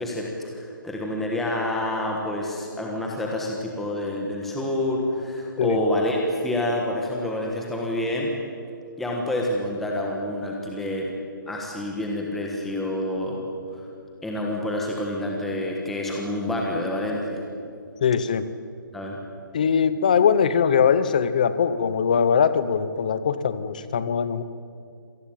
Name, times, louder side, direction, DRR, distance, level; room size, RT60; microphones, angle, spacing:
voice 1, 0.0-8.3 9.0-11.1 11.5-13.4 13.8-13.9 14.2-17.4 18.9-19.2, left 1 dB, ahead, -1 dB, 1.3 m, -28 dB
voice 2, 18.0-18.5 19.5-24.4, left 7 dB, 20° left, 14 dB, 0.8 m, -21 dB
26.5 x 18.5 x 8.8 m, 2.3 s
hypercardioid pair, 180°, 11 cm